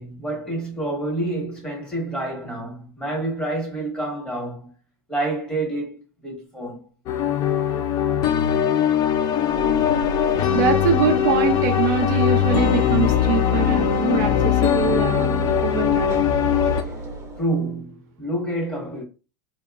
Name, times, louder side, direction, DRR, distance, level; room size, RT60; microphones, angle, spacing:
voice 1, 0.0-4.7 5.1-6.8 17.4-19.0, right 2 dB, 10° left, 1.3 m, -28 dB
sound 1, 7.1-16.8, left 10 dB, 40° left, 0.4 m, -21 dB
Train / Engine / Alarm, 9.4-17.7, right 3 dB, 25° right, 0.7 m, -32 dB
voice 2, 10.5-16.2, right 7 dB, 65° right, 0.5 m, -24 dB
2.7 x 2.3 x 2.3 m
supercardioid pair, 115°, 10 cm